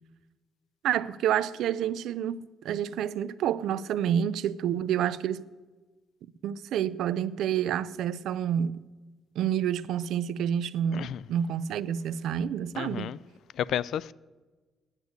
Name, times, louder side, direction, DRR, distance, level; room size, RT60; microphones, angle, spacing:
voice 1, 0.8-5.4 6.4-8.9 9.4-13.1, right 9 dB, 85° right, 0.4 m, -29 dB
voice 2, 12.7-13.2 13.6-14.1, left 10 dB, 70° left, 0.3 m, -31 dB
9.8 x 8.1 x 9.3 m
cardioid pair, 145°, 0 cm